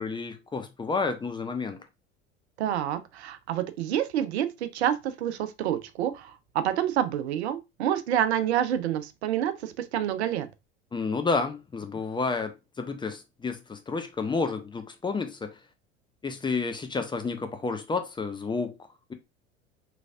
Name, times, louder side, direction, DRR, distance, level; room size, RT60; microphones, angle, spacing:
voice 1, 0.0-1.8 10.9-15.5 16.2-18.8, left 4 dB, 15° left, 0.5 m, -30 dB
voice 2, 2.6-10.5, right 10 dB, 70° right, 0.6 m, -28 dB
3.9 x 3.2 x 2.4 m
figure-of-eight pair, 70°, 34 cm